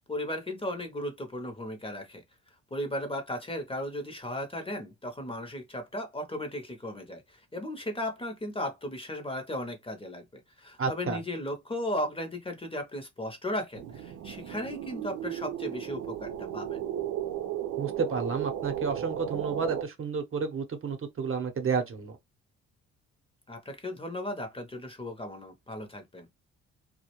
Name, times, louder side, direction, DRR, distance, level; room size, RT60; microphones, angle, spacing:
voice 1, 0.1-2.2 2.7-16.8 23.5-26.3, left 1 dB, 20° left, 0.7 m, -36 dB
voice 2, 10.8-11.2 17.8-22.2, right 5 dB, 45° right, 0.8 m, -31 dB
sound 1, 13.7-19.8, right 11 dB, 90° right, 0.6 m, -35 dB
2.3 x 2.1 x 2.9 m
cardioid pair, 90°, 30 cm